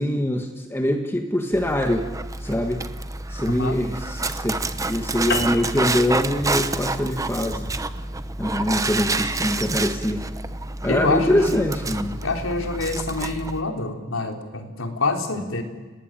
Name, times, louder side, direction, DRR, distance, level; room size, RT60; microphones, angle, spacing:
voice 1, 0.0-2.1 2.4-2.8 3.3-7.6 8.4-10.2 10.8-12.2, left 1 dB, 10° left, 4 dB, 1.5 m, -24 dB
Dog, 1.5-13.6, right 3 dB, 15° right, 1.0 m, -28 dB
voice 2, 3.4-3.8 10.9-11.6 12.2-15.6, left 2 dB, 90° left, 3 dB, 3.7 m, -26 dB
sound 1, 5.3-10.0, left 3 dB, 60° left, 2.5 m, -34 dB
30.0 x 19.0 x 9.1 m, 1.3 s
head